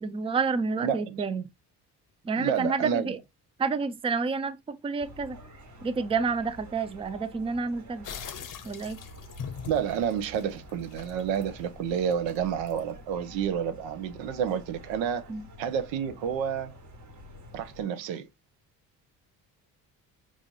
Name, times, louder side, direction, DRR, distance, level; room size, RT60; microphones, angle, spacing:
voice 1, 0.0-1.5 2.2-3.2 3.6-5.4 5.8-8.1 8.6-9.0 15.3-15.4, right 4 dB, 15° right, 0.4 m, -29 dB
voice 2, 0.8-1.2 2.4-3.1 9.7-15.3 15.6-16.7 17.5-18.3, right 8 dB, 75° right, 0.8 m, -29 dB
sound 1, 5.0-17.8, right 1 dB, 40° right, 1.3 m, -49 dB
sound 2, 8.0-13.1, left 7 dB, 45° left, 0.7 m, -43 dB
4.8 x 2.5 x 2.7 m
supercardioid pair, 65°, 45 cm